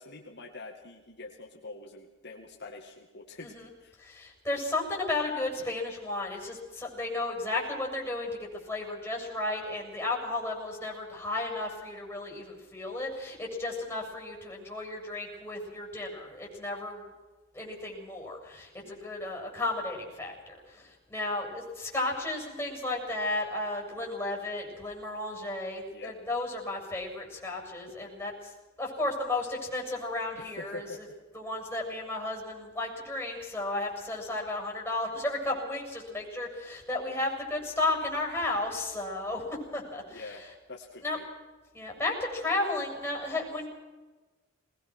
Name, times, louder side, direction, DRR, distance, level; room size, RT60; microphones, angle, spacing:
voice 1, 0.0-4.0 18.8-19.1 25.9-26.1 28.0-28.1 30.4-31.2 40.1-40.4 40.7-41.3, left 3 dB, 55° left, 1 dB, 2.2 m, -45 dB
voice 2, 3.4-3.7 4.0-17.0 17.5-28.5 28.8-31.1 31.3-40.3 41.0-41.2 41.7-43.7, left 2 dB, 10° left, -1 dB, 7.3 m, -33 dB
21.0 x 20.5 x 6.4 m, 1.2 s
head